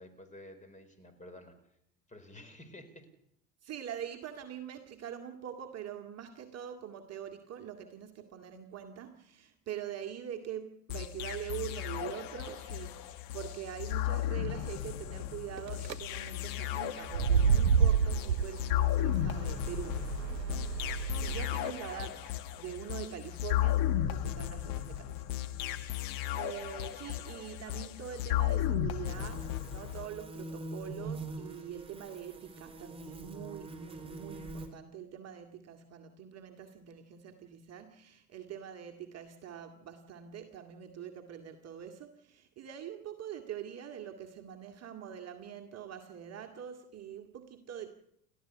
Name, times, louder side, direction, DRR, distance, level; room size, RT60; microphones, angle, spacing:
voice 1, 0.0-1.5 2.1-3.1 21.7-22.1, left 1 dB, 15° left, 9 dB, 5.1 m, -51 dB
voice 2, 3.6-25.3 25.7-47.9, right 9 dB, 30° right, 3 dB, 2.0 m, -44 dB
sound 1, 10.9-30.1, left 12 dB, 45° left, 1.8 m, -34 dB
sound 2, 15.6-15.9 17.0-21.4, right 6 dB, 85° right, 0.7 m, -29 dB
sound 3, 29.0-34.7, right 2 dB, 10° right, 4.7 m, -44 dB
29.5 x 13.0 x 7.0 m, 0.74 s
figure-of-eight pair, 75°, 49 cm